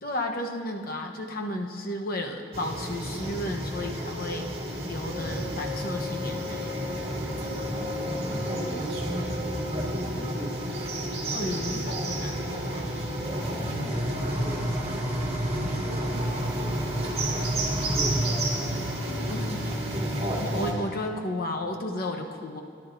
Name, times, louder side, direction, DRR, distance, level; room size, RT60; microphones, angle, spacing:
voice 1, 0.0-4.5 4.8-6.7 11.3-12.9 19.3-19.6 20.4-22.6, left 1 dB, 50° left, 2 dB, 1.0 m, -33 dB
sound 1, 2.5-20.7, right 1 dB, 30° right, 1.8 m, -30 dB
voice 2, 8.1-9.4 9.7-10.7 13.6-14.8 15.8-17.0 17.9-18.8 19.0-19.8, equal, 25° left, -2 dB, 1.6 m, -40 dB
17.5 x 11.0 x 2.6 m, 2.4 s
head